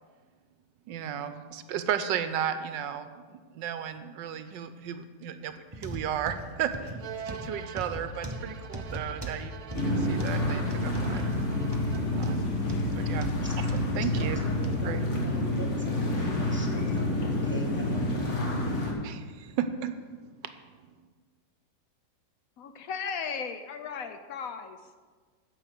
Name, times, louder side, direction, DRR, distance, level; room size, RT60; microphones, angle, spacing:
voice 1, 0.9-9.5 9.8-11.2 12.1-12.5 13.0-13.3 13.6-14.4 14.8-15.0 19.0-19.9 20.4-20.5, right 9 dB, 80° right, 10 dB, 1.3 m, -34 dB
sound 1, 5.7-14.8 15.4-15.5 16.2-16.3, right 1 dB, 45° right, 0.3 m, -38 dB
Bowed string instrument, 7.0-12.7, right 7 dB, 60° right, 1.1 m, -45 dB
sound 2, 9.7-18.9, left 1 dB, 40° left, 1.7 m, -28 dB
voice 2, 14.1-18.8, right 1 dB, 10° right, 1 dB, 0.7 m, -42 dB
voice 3, 22.6-25.0, left 6 dB, 65° left, 8 dB, 0.9 m, -36 dB
9.2 x 6.8 x 6.5 m, 1.5 s
omnidirectional pair, 2.0 m